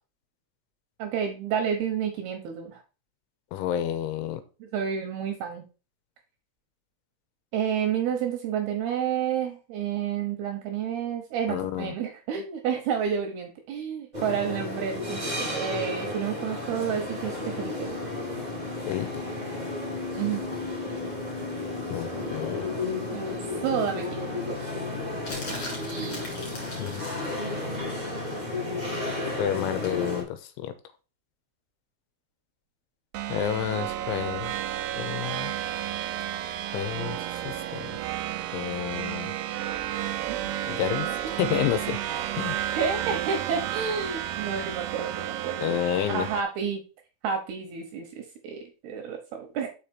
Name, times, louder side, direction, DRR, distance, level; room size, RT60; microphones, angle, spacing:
voice 1, 1.0-2.8 4.6-5.7 7.5-17.9 20.2-20.4 23.1-24.8 25.5-26.2 42.8-45.8 46.1-46.8 47.2-49.7, right 7 dB, 70° right, 4 dB, 2.5 m, -30 dB
voice 2, 3.5-4.4 11.5-12.0 18.9-19.3 21.9-22.7 26.8-27.0 29.4-30.7 33.3-34.5 34.9-35.5 36.7-38.0 38.5-39.3 40.4-42.0 42.3-42.8 45.6-46.3, left 10 dB, 85° left, 11 dB, 3.1 m, -30 dB
sound 1, 14.1-30.2, left 2 dB, 35° right, 0.6 m, -33 dB
sound 2, 25.2-27.3 29.8-30.0, left 2 dB, 40° left, 3.1 m, -39 dB
sound 3, 33.1-46.4, right 12 dB, 90° right, 2.4 m, -32 dB
6.4 x 5.2 x 4.2 m, 0.32 s
omnidirectional pair, 5.6 m